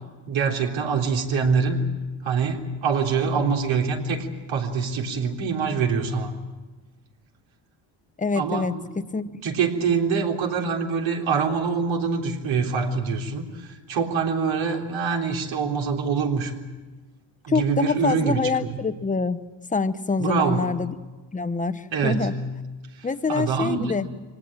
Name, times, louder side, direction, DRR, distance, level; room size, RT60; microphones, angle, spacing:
voice 1, 0.3-1.8 2.2-6.3 8.3-8.9 9.4-16.5 17.4-18.7 20.2-20.7 21.9-22.4 23.0-23.9, right 5 dB, 70° right, 0 dB, 3.8 m, -25 dB
voice 2, 8.2-8.7 9.1-9.3 17.5-19.4 19.7-20.9 21.3-22.3 23.0-24.1, left 4 dB, 15° left, 12 dB, 1.0 m, -25 dB
24.5 x 19.0 x 8.9 m, 1.2 s
cardioid pair, 100°, 47 cm